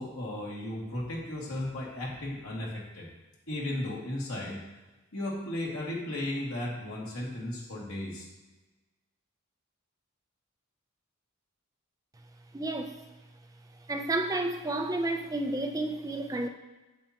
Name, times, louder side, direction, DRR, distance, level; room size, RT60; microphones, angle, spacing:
voice 1, 0.0-3.1 3.5-4.6 5.1-8.3, left 1 dB, 80° left, -4 dB, 2.3 m, -35 dB
voice 2, 12.5-13.0 13.9-16.5, right 2 dB, 15° right, 4 dB, 0.5 m, -31 dB
8.8 x 7.9 x 2.9 m, 1.1 s
head